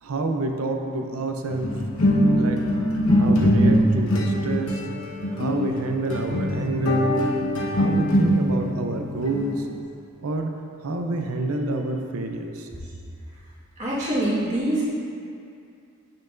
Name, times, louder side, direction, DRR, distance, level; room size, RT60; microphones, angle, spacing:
voice 1, 0.0-1.8 2.3-2.6 3.2-4.8 5.3-7.2 7.8-9.7 10.2-10.5 10.8-12.7, right 2 dB, 80° right, 4 dB, 0.5 m, -28 dB
sound 1, 1.5-9.7, equal, 70° left, 1.0 m, -22 dB
voice 2, 13.8-14.8, right 1 dB, 35° right, -10 dB, 1.6 m, -24 dB
8.9 x 5.8 x 2.5 m, 2.5 s
head